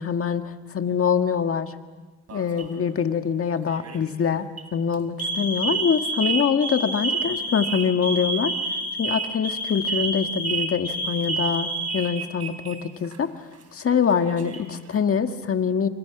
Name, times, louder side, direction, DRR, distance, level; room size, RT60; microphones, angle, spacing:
voice 1, 0.0-1.7 2.3-8.5 9.0-13.4 13.7-15.9, left 7 dB, 50° left, 7 dB, 1.8 m, -24 dB
Alarm, 2.3-2.8 3.7-4.0 4.4-4.6 5.2-12.7 13.0-13.2 14.1-14.8, right 3 dB, 60° right, 4.1 m, -28 dB
29.5 x 26.0 x 6.0 m, 1.2 s
cardioid pair, 80°, 29 cm